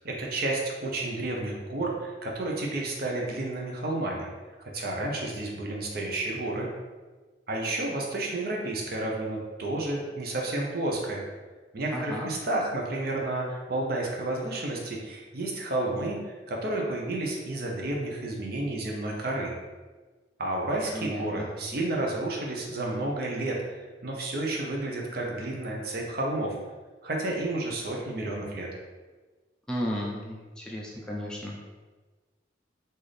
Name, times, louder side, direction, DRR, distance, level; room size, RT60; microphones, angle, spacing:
voice 1, 0.0-4.3 4.7-6.7 7.5-11.2 11.7-19.5 20.4-26.6 27.0-28.7, right 2 dB, 55° right, -1 dB, 0.7 m, -31 dB
voice 2, 11.9-12.3 20.9-21.5 29.7-31.6, equal, 5° left, -4 dB, 0.4 m, -34 dB
4.0 x 2.6 x 3.2 m, 1.3 s
head